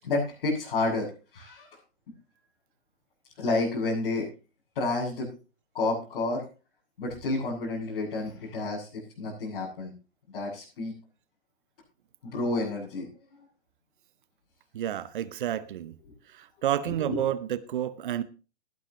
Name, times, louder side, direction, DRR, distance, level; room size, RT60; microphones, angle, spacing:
voice 1, 0.0-1.7 3.4-4.3 4.7-5.3 5.7-6.4 7.0-9.9 10.3-10.9 12.2-13.1 16.9-17.2, left 2 dB, 55° left, 6.5 m, -30 dB
voice 2, 14.7-16.0 16.3-18.2, right 11 dB, 45° right, 0.9 m, -30 dB
18.5 x 11.5 x 2.9 m
figure-of-eight pair, 115°, 34 cm